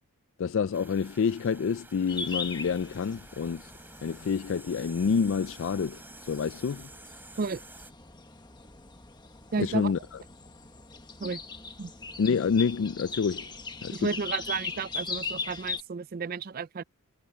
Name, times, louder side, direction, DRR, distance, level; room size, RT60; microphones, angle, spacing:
voice 1, 0.4-3.7 4.0-6.9 9.6-10.2 12.2-13.5 13.8-14.1, left 6 dB, 60° left, 0.4 m, -28 dB
sound 1, 0.7-7.9, right 2 dB, 10° right, 4.3 m, -51 dB
sound 2, 2.1-15.8, left 4 dB, 20° left, 1.4 m, -40 dB
voice 2, 9.5-9.9 11.2-11.4 11.8-11.9 13.9-16.8, right 5 dB, 40° right, 0.4 m, -32 dB
head